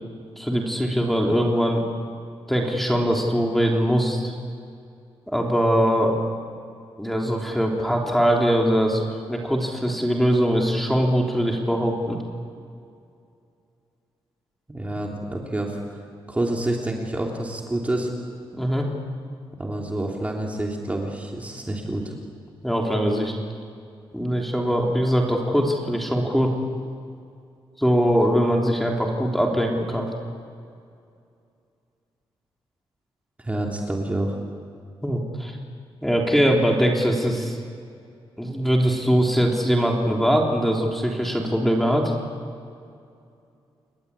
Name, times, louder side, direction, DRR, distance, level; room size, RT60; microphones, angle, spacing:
voice 1, 0.4-1.8 2.5-4.3 5.3-6.2 7.0-12.2 18.5-18.9 22.6-23.3 24.1-26.5 27.8-30.1 35.0-35.5 36.0-37.6 38.4-42.1, equal, ahead, 0 dB, 3.5 m, -22 dB
voice 2, 14.7-15.8 16.3-18.1 19.6-22.1 33.4-34.4, right 1 dB, 15° right, 0 dB, 3.2 m, -28 dB
29.0 x 21.5 x 8.5 m, 2.4 s
wide cardioid pair, 130°, 9 cm